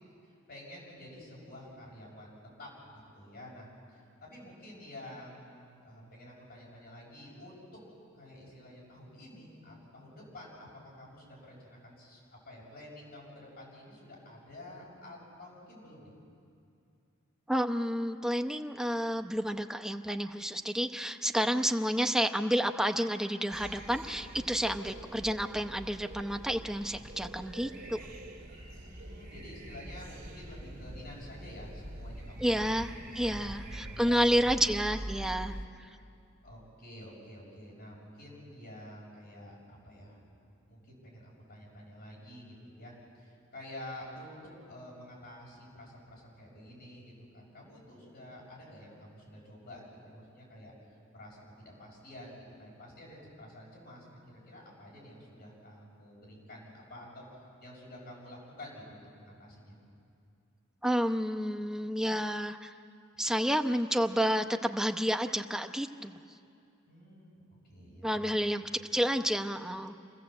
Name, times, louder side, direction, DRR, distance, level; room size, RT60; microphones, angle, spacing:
voice 1, 0.2-7.8 8.1-10.7 11.0-16.1 28.8-32.7 33.1-34.2 36.4-40.2 40.7-44.4 44.7-57.2 57.6-59.8 66.9-68.3, left 1 dB, 50° left, -4 dB, 7.1 m, -49 dB
voice 2, 17.5-28.0 32.4-35.5 60.8-62.7 63.2-66.1 68.0-68.6 68.9-69.9, equal, 5° right, 5 dB, 0.7 m, -30 dB
sound 1, 23.5-35.7, right 1 dB, 45° right, 2.5 m, -44 dB
26.5 x 15.0 x 7.8 m, 2.5 s
head